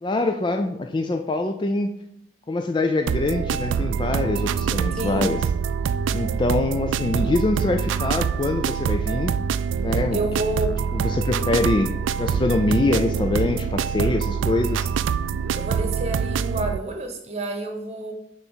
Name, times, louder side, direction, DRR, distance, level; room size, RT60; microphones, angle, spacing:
voice 1, 0.0-2.0 2.5-5.4 6.1-9.4 9.8-10.2 10.9-14.9, left 2 dB, 25° left, 0.3 m, -24 dB
sound 1, 3.1-16.8, right 7 dB, 90° right, 0.3 m, -25 dB
voice 2, 5.0-5.4 10.1-10.7 15.5-18.1, right 2 dB, 35° right, 1.0 m, -29 dB
5.8 x 3.9 x 6.2 m
head